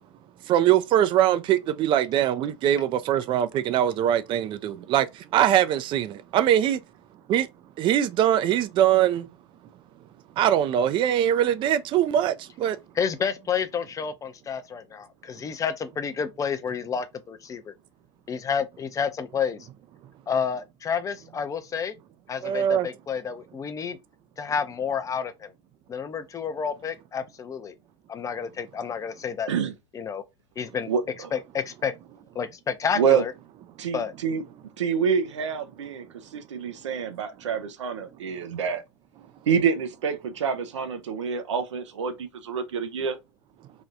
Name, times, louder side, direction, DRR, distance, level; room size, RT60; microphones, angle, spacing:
voice 1, 0.5-6.8 7.3-7.5 7.8-9.3 10.4-12.8 22.4-22.9, right 11 dB, 35° right, 0.4 m, -22 dB
voice 2, 12.9-17.7 18.3-19.7 20.3-21.9 22.3-24.0 24.4-25.5 25.9-27.7 28.1-29.5 29.9-30.2 30.6-30.9 31.3-31.9 32.3-33.3 33.9-34.1, left 6 dB, 20° left, 0.5 m, -30 dB
voice 3, 33.8-34.4 34.8-36.1 36.3-38.8 39.5-43.2, right 6 dB, 80° right, 0.6 m, -26 dB
3.4 x 2.3 x 2.6 m
hypercardioid pair, 100°, 15 cm